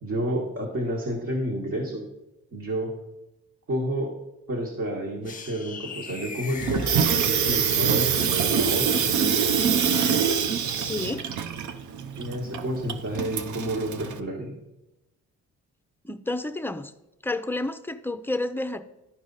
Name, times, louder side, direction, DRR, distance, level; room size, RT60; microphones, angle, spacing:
voice 1, 0.0-2.0 2.5-3.0 3.7-4.1 4.5-8.9 12.1-14.5, right 1 dB, 50° right, -1 dB, 1.7 m, -30 dB
sound 1, 5.2-8.1, left 4 dB, 25° left, 1.0 m, -39 dB
Water tap faucet / Sink (filling or washing), 6.6-14.2, right 7 dB, 75° right, 0.7 m, -25 dB
voice 2, 10.8-11.3 16.0-16.9 17.2-18.8, left 2 dB, 5° left, 9 dB, 0.5 m, -30 dB
12.0 x 4.9 x 4.1 m, 0.94 s
cardioid pair, 90°, 30 cm